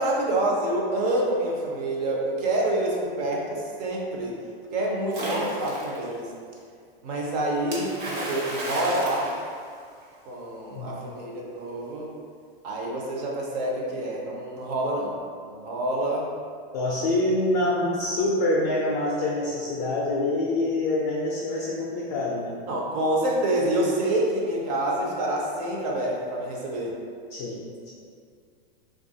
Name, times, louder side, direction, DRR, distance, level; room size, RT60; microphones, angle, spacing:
voice 1, 0.0-4.4 4.7-6.3 7.0-9.4 10.3-12.1 12.6-15.2 15.4-16.3 22.7-26.9, right 1 dB, 40° right, -2 dB, 0.5 m, -27 dB
Splash splatter, 5.1-6.1 7.7-10.2, right 1 dB, 70° right, 1.0 m, -33 dB
voice 2, 16.7-22.6 27.3-27.9, left 2 dB, 45° left, -5 dB, 0.4 m, -26 dB
2.9 x 2.3 x 2.6 m, 2.2 s
supercardioid pair, 155°, 31 cm